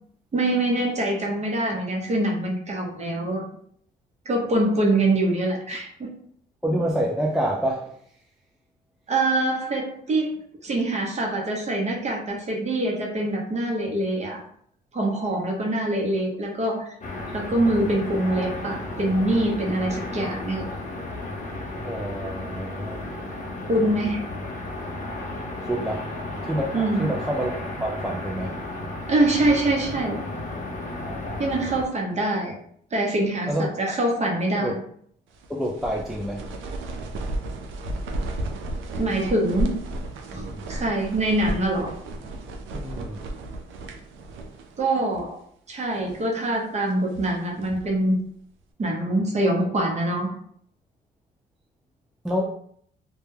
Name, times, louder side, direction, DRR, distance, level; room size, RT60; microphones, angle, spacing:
voice 1, 0.3-3.4 4.3-6.1 9.1-10.3 10.6-14.4 14.9-16.9 17.3-20.7 23.7-24.2 26.7-27.1 29.1-30.2 31.4-32.5 32.9-34.7 39.0-39.8 40.3-41.9 44.8-45.4 45.7-48.2 48.8-50.3, right 1 dB, 35° right, 0 dB, 0.7 m, -24 dB
voice 2, 6.6-8.0 21.8-23.1 25.6-26.1 26.5-28.6 33.5-34.0 34.6-34.7 35.6-36.5 42.7-43.2 52.2-52.5, equal, ahead, -1 dB, 0.3 m, -27 dB
sound 1, 17.0-31.9, left 2 dB, 40° left, 0.7 m, -33 dB
sound 2, 35.3-44.9 45.1-45.2 45.8-46.3 46.9-48.0, right 1 dB, 80° right, 0.4 m, -33 dB
2.2 x 2.1 x 3.2 m, 0.64 s
cardioid pair, 90°, 20 cm